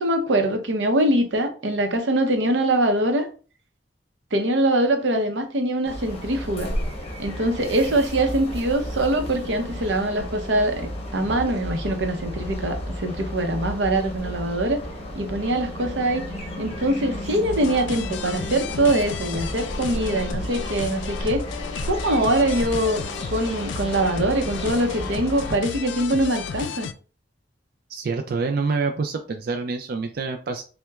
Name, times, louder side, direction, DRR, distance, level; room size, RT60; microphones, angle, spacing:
voice 1, 0.0-3.3 4.3-6.7 7.2-14.8 15.1-16.2 16.6-21.4 21.8-26.9, right 1 dB, 90° right, 0.7 m, -23 dB
sound 1, 5.8-25.5, equal, 35° left, 0.9 m, -33 dB
sound 2, 17.5-26.9, left 6 dB, 75° left, 0.3 m, -34 dB
voice 2, 27.9-30.6, right 4 dB, 55° right, 0.4 m, -26 dB
5.8 x 2.2 x 2.3 m
head